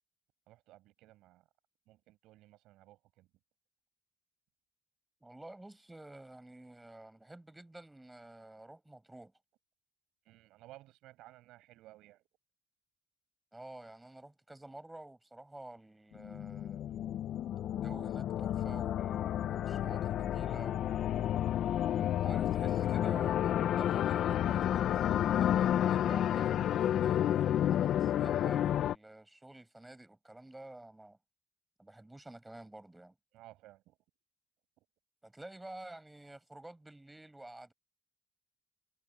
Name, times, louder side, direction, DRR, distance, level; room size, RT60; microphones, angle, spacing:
voice 1, 0.5-1.5 1.9-3.3 10.2-12.3 33.3-34.0 34.8-34.9, right 16 dB, 85° right, 6.0 m, -57 dB
voice 2, 5.2-9.3 13.5-17.3 17.8-21.4 22.2-31.2 31.8-33.2 35.2-37.7, right 1 dB, 15° right, 7.3 m, -50 dB
sound 1, 16.2-29.0, left 11 dB, 70° left, 0.9 m, -31 dB
supercardioid pair, 60°, 0 cm